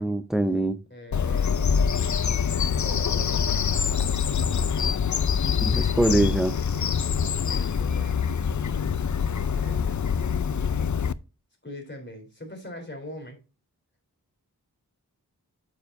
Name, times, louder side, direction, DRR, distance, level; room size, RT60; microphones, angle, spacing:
voice 1, 0.0-0.8 5.6-6.5, right 1 dB, ahead, 0.6 m, -23 dB
voice 2, 0.9-1.8 2.6-3.4 7.4-8.2 9.5-10.3 11.6-13.4, left 1 dB, 30° left, 3.7 m, -41 dB
Bird vocalization bird call bird song, 1.1-11.1, left 7 dB, 50° left, 0.5 m, -25 dB
9.1 x 7.2 x 2.7 m
wide cardioid pair, 50°, 39 cm